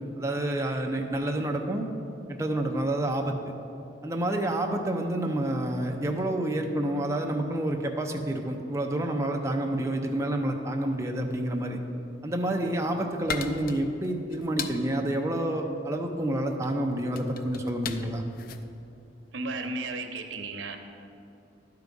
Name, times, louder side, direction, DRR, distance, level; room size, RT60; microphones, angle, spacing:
voice 1, 0.0-1.9 2.3-3.4 4.0-11.8 12.2-18.2, right 1 dB, 15° right, 2 dB, 0.6 m, -29 dB
sound 1, 12.6-19.8, left 5 dB, 50° left, 0.4 m, -39 dB
voice 2, 19.3-20.8, right 3 dB, 90° right, 6 dB, 0.8 m, -34 dB
11.5 x 4.7 x 5.3 m, 2.8 s
head